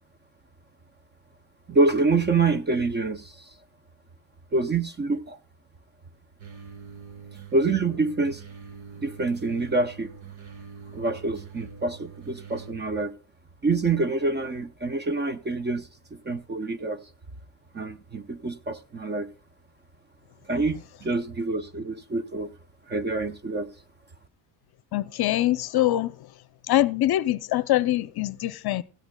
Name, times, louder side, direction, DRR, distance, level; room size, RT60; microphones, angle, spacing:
voice 1, 1.7-3.5 4.5-5.4 7.5-8.4 9.0-10.1 10.9-13.1 13.6-17.0 17.7-19.3 20.5-22.5 22.9-23.7, right 3 dB, 25° right, 0.6 m, -26 dB
sound 1, 6.4-12.7, right 6 dB, 80° right, 3.0 m, -44 dB
voice 2, 24.9-26.3 26.7-28.8, left 14 dB, 55° left, 0.6 m, -24 dB
17.0 x 14.5 x 2.2 m
cardioid pair, 145°, 47 cm